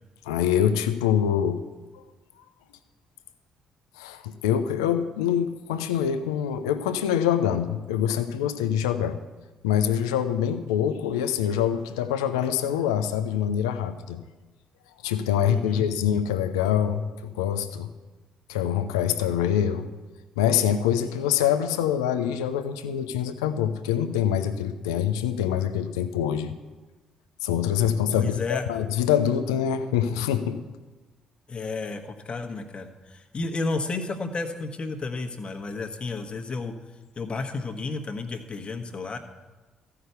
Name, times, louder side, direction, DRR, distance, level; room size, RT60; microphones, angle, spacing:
voice 1, 0.2-1.6 1.9-2.0 4.0-9.2 9.6-14.2 15.0-17.9 18.5-19.9 20.4-26.5 27.4-30.6, left 9 dB, 85° left, 10 dB, 0.6 m, -25 dB
voice 2, 15.5-15.9 28.1-28.6 31.5-36.7 37.2-39.2, left 3 dB, 40° left, 4 dB, 1.3 m, -32 dB
14.0 x 5.9 x 8.1 m, 1.2 s
hypercardioid pair, 45°, 3 cm